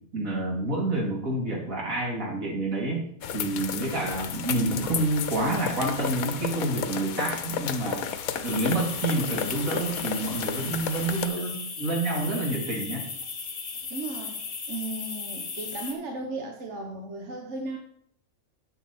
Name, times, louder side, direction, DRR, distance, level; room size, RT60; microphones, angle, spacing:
voice 1, 0.1-3.1 3.3-8.0 8.4-13.0, right 2 dB, 75° right, -2 dB, 3.0 m, -28 dB
sound 1, 3.2-11.3, left 8 dB, 85° left, 1.2 m, -33 dB
sound 2, 8.4-15.9, left 5 dB, 60° left, 1.7 m, -36 dB
voice 2, 13.9-14.4 14.7-17.8, right 2 dB, 55° right, 2 dB, 1.4 m, -35 dB
9.6 x 7.9 x 4.2 m, 0.68 s
omnidirectional pair, 1.5 m